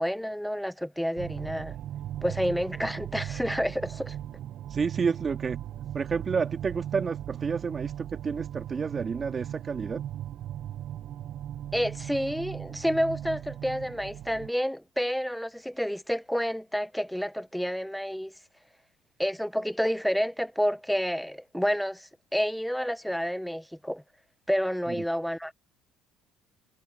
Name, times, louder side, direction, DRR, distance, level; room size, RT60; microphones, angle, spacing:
voice 1, 0.0-1.8 2.2-4.2 11.7-18.3 19.2-24.0 24.5-25.5, equal, ahead, 0.9 m, -29 dB
sound 1, 1.2-14.5, right 11 dB, 60° right, 1.0 m, -38 dB
voice 2, 4.7-5.6 5.9-10.0 24.9-25.0, right 5 dB, 35° right, 2.3 m, -30 dB
supercardioid pair, 80°, 0 cm